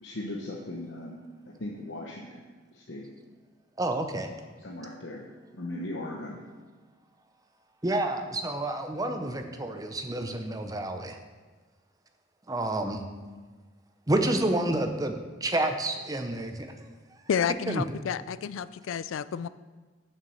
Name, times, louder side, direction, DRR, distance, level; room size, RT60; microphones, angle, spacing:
voice 1, 0.0-1.1 1.6-2.4 2.7-3.1 4.6-5.2 5.5-6.4, left 1 dB, 60° left, -2 dB, 0.9 m, -38 dB
voice 2, 3.8-4.3 7.8-11.2 12.5-13.0 14.1-16.9 17.7-17.8, right 1 dB, 20° right, 5 dB, 0.7 m, -29 dB
voice 3, 17.3-19.5, left 7 dB, 80° left, 16 dB, 0.3 m, -30 dB
7.2 x 6.7 x 6.4 m, 1.3 s
head